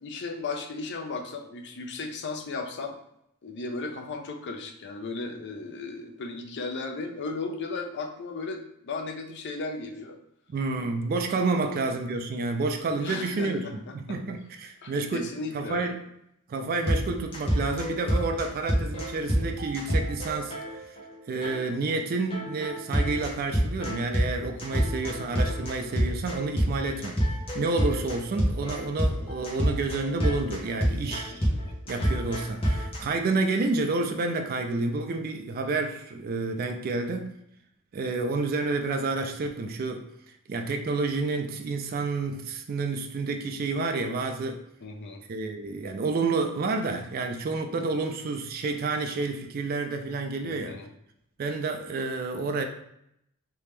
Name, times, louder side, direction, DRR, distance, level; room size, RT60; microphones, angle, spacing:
voice 1, 0.0-3.0 3.4-10.2 11.6-11.8 13.0-14.2 14.8-15.9 24.5-24.9 30.9-31.7 44.8-45.2 50.4-50.9, left 3 dB, 55° left, 5 dB, 0.5 m, -36 dB
voice 2, 10.5-16.0 16.5-21.0 21.3-27.2 27.5-31.5 31.9-37.3 37.9-40.0 40.5-44.6 45.3-50.8 51.4-52.6, right 3 dB, 40° right, 5 dB, 0.3 m, -29 dB
Stop drugs music, 16.9-21.1 21.4-21.5 21.9-22.0 22.3-33.0, equal, 25° left, 0.9 m, -27 dB
3.4 x 2.8 x 3.2 m, 0.76 s
head